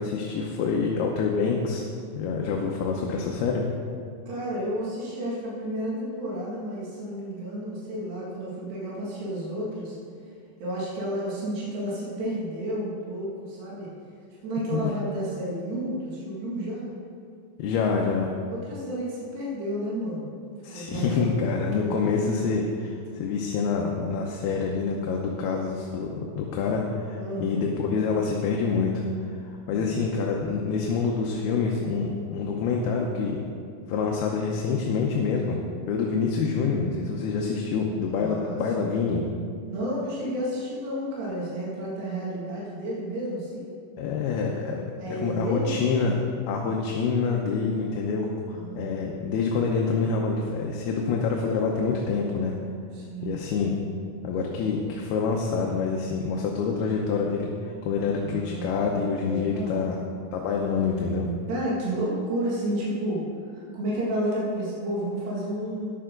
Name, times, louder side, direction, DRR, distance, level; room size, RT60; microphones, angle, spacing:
voice 1, 0.0-1.9 2.1-3.7 14.7-14.9 17.6-18.3 20.6-33.4 33.9-35.6 35.9-39.2 44.0-46.1 46.5-52.5 53.2-53.8 54.2-60.0 60.3-61.3, left 5 dB, 80° left, 0 dB, 2.8 m, -26 dB
voice 2, 4.3-10.0 10.6-13.9 14.4-16.9 18.5-20.3 20.7-21.9 27.2-27.8 29.7-30.1 38.2-39.0 39.7-43.8 45.0-46.2 48.5-49.2 52.9-53.4 58.0-59.8 61.5-65.9, right 1 dB, 85° right, -6 dB, 4.3 m, -31 dB
14.0 x 10.5 x 3.8 m, 2.3 s
omnidirectional pair, 4.6 m